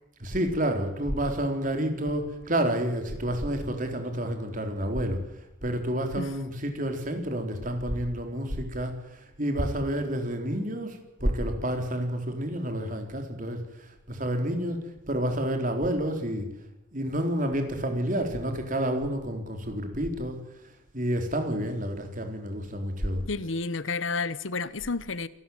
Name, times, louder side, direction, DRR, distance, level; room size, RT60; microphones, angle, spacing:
voice 1, 0.2-5.2 5.6-14.8 15.1-16.5 16.9-20.4 20.9-23.2, right 1 dB, 45° right, 4.1 m, -29 dB
voice 2, 23.3-25.3, left 4 dB, 85° left, 1.1 m, -30 dB
27.5 x 13.0 x 9.4 m
head